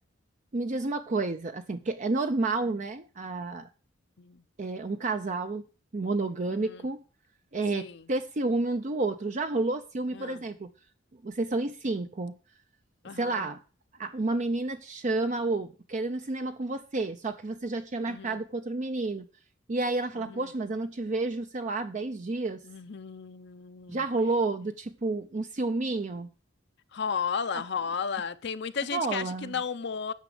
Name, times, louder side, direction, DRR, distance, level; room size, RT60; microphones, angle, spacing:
voice 1, 0.5-3.7 4.6-5.6 5.9-7.0 7.5-10.7 11.2-12.3 13.2-13.6 14.0-19.3 19.7-22.6 23.9-26.3 27.5-27.6 28.9-29.6, right 3 dB, 40° right, 0.5 m, -30 dB
voice 2, 6.5-6.9 7.7-8.1 10.1-10.4 13.0-13.5 18.0-18.4 20.2-20.5 22.6-24.0 26.9-30.1, left 6 dB, 60° left, 0.6 m, -34 dB
9.3 x 6.1 x 7.8 m
head